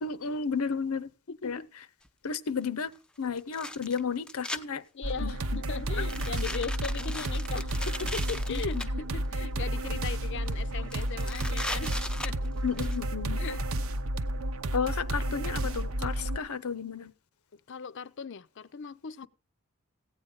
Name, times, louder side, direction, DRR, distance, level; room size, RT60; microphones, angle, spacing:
voice 1, 0.0-1.1 1.4-1.6 2.2-2.9 3.2-4.8 5.2-5.3 6.1-6.2 8.5-8.9 12.6-13.5 14.7-17.1, left 5 dB, 90° left, 0.7 m, -32 dB
voice 2, 1.3-1.7 4.9-12.0 12.2-12.5 13.4-13.6 17.5-19.3, left 5 dB, 55° left, 0.5 m, -38 dB
sound 1, 2.0-2.1 3.4-4.6 5.1-5.4 6.0-8.9 9.6-10.2 10.5-10.6 10.9-13.0, left 1 dB, 5° left, 0.5 m, -38 dB
sound 2, 5.0-16.4, right 1 dB, 70° right, 0.8 m, -31 dB
16.0 x 8.8 x 3.9 m
head